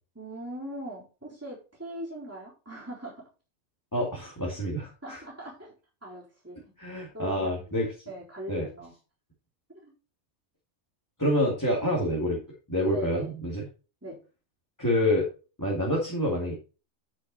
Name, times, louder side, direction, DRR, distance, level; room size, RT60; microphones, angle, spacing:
voice 1, 0.1-3.2 5.0-5.7 6.0-6.6 7.1-8.9 9.7-9.9 12.9-13.3 14.0-14.2, right 1 dB, 10° right, -5 dB, 3.9 m, -40 dB
voice 2, 3.9-5.2 6.8-7.9 8.5-8.7 11.2-12.4 12.7-13.6 14.8-15.3 15.6-16.5, left 1 dB, 15° left, -5 dB, 2.5 m, -27 dB
8.5 x 6.3 x 4.3 m, 0.33 s
omnidirectional pair, 1.5 m